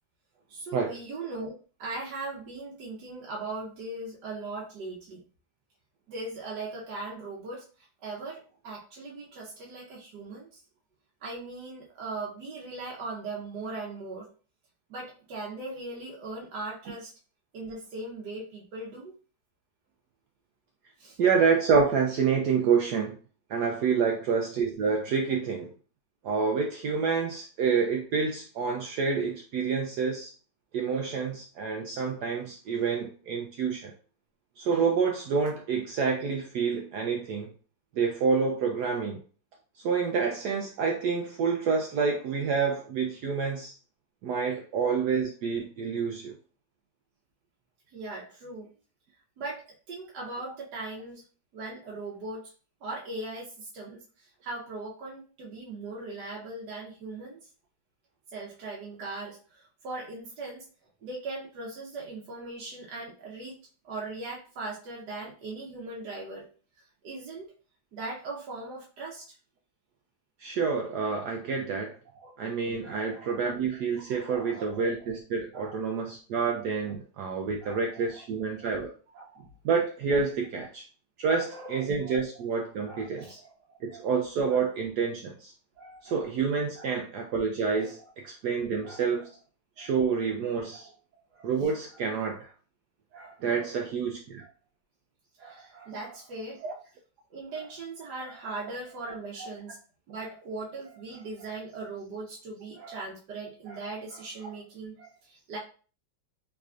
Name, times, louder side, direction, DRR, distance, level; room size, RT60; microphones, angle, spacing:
voice 1, 0.5-1.5 1.8-5.2 6.1-10.6 11.2-14.3 14.9-17.1 17.5-19.1 21.0-21.2 47.9-48.7 49.4-51.2 51.5-52.5 52.8-57.4 58.3-60.6 61.0-63.5 63.8-66.4 67.0-67.5 67.9-69.3 72.1-72.3 72.8-73.5 74.1-75.1 75.5-75.9 77.6-78.2 78.6-78.8 79.1-79.5 80.6-80.7 81.2-82.4 82.9-84.0 84.5-84.6 85.8-86.2 86.7-86.9 87.7-88.1 88.8-89.3 89.8-90.1 90.7-90.8 91.3-91.5 93.1-93.8 94.4-94.5 95.4-96.7 97.3-99.8 100.1-105.6, right 3 dB, 65° right, -3 dB, 1.2 m, -40 dB
voice 2, 21.2-23.2 23.5-25.7 26.2-30.3 30.7-33.9 34.6-37.5 37.9-39.2 39.8-43.7 44.2-46.3 70.4-72.0 72.4-78.9 79.6-80.8 81.2-83.4 83.8-85.5 86.0-88.0 88.2-89.3 89.8-90.9 91.4-92.5 93.4-94.4 96.6-96.7 99.4-99.5, right 5 dB, 80° right, 1 dB, 0.9 m, -28 dB
3.5 x 3.2 x 2.4 m, 0.38 s
omnidirectional pair, 2.2 m